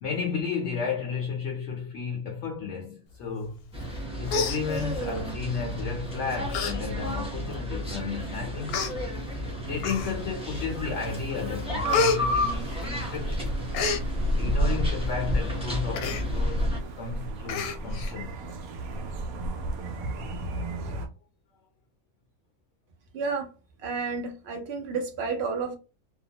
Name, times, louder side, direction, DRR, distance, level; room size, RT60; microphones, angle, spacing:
voice 1, 0.0-3.7 4.2-8.8 9.6-13.6 14.4-16.7 17.0-18.3, left 5 dB, 60° left, 0.9 m, -33 dB
sound 1, 3.7-16.8, equal, 5° right, 0.7 m, -32 dB
Human voice, 3.8-4.0 4.3-5.2 5.9-6.1 6.5-6.7 7.1-7.2 8.0-8.1 8.7-8.9 9.8-10.4 10.8-11.2 11.5-13.2 13.5-14.0 15.9-16.2 16.6-16.7 17.0-17.1 17.5-18.1 18.5-18.6, left 4 dB, 80° left, 1.1 m, -29 dB
sound 2, 9.6-21.1, right 1 dB, 80° right, 1.0 m, -33 dB
voice 2, 23.1-23.5 23.8-25.8, right 4 dB, 55° right, 0.8 m, -31 dB
2.8 x 2.0 x 2.8 m
omnidirectional pair, 1.5 m